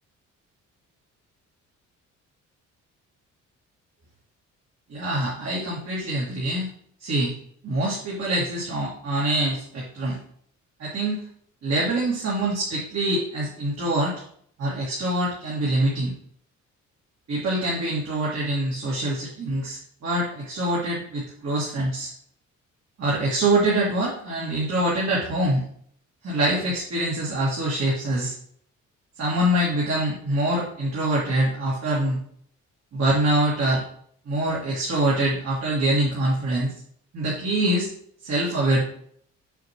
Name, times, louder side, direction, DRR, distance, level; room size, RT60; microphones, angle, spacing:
voice 1, 4.9-6.7 7.0-7.3 7.6-10.2 10.8-11.2 11.6-14.2 14.6-16.1 17.3-22.1 23.0-25.6 26.2-28.3 29.2-32.2 32.9-33.8 34.3-36.7 37.1-37.9 38.2-38.8, right 1 dB, 60° right, -6 dB, 2.3 m, -24 dB
6.9 x 6.3 x 3.1 m, 0.63 s
cardioid pair, 90°, 30 cm